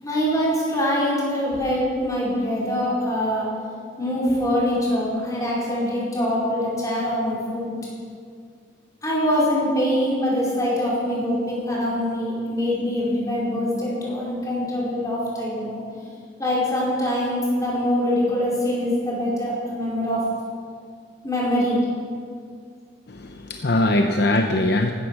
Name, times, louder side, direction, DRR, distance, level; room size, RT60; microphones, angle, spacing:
voice 1, 0.0-3.5 4.0-7.7 9.0-15.8 16.4-20.2 21.2-21.9, equal, 15° left, -6 dB, 4.8 m, -24 dB
voice 2, 23.1-24.9, left 1 dB, 55° left, 4 dB, 0.8 m, -21 dB
15.5 x 12.5 x 6.5 m, 2.2 s
head